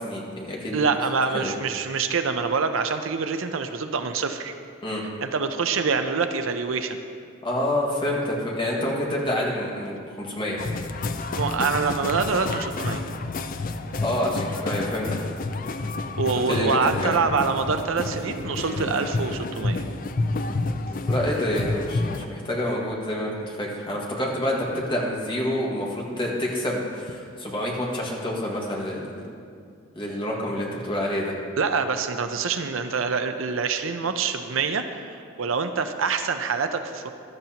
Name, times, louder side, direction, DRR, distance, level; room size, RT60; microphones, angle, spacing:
voice 1, 0.0-0.8 1.3-1.5 4.8-5.0 7.4-10.6 14.0-15.4 16.4-17.1 18.7-18.9 21.1-29.2 29.9-31.3, left 1 dB, 25° left, -3 dB, 1.8 m, -28 dB
voice 2, 0.7-4.5 5.2-7.0 11.3-13.0 16.2-19.8 31.6-37.1, right 5 dB, 75° right, 8 dB, 0.6 m, -25 dB
sound 1, 10.6-22.3, left 3 dB, 40° left, 0.4 m, -29 dB
15.0 x 12.0 x 2.9 m, 2.3 s
head